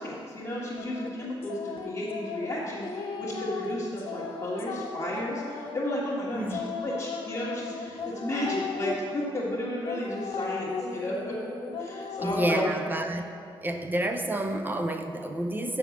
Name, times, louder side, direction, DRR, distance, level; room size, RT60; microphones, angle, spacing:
voice 1, 0.0-11.4 11.8-12.7, left 1 dB, 30° left, -9 dB, 1.6 m, -33 dB
sound 1, 0.8-8.9 9.9-12.7, left 5 dB, 85° left, 1.0 m, -36 dB
voice 2, 12.2-13.2 13.6-15.8, right 1 dB, 20° right, 6 dB, 0.7 m, -29 dB
7.4 x 6.2 x 7.1 m, 2.4 s
cardioid pair, 105°, 9 cm